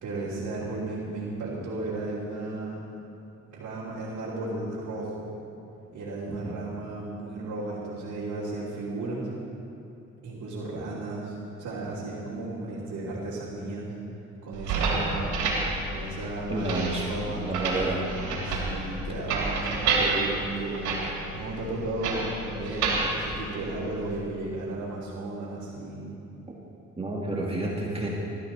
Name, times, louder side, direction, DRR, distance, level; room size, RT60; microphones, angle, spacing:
voice 1, 0.0-2.8 3.5-5.3 5.9-9.3 10.2-13.9 14.4-15.3 15.9-17.5 18.4-26.0, right 2 dB, 75° right, -9 dB, 3.3 m, -34 dB
sound 1, 14.5-24.2, right 3 dB, 90° right, 3.2 m, -30 dB
voice 2, 16.5-18.5 27.0-28.1, right 2 dB, 20° right, -3 dB, 2.0 m, -30 dB
20.0 x 13.5 x 4.3 m, 2.7 s
cardioid pair, 90°, 30 cm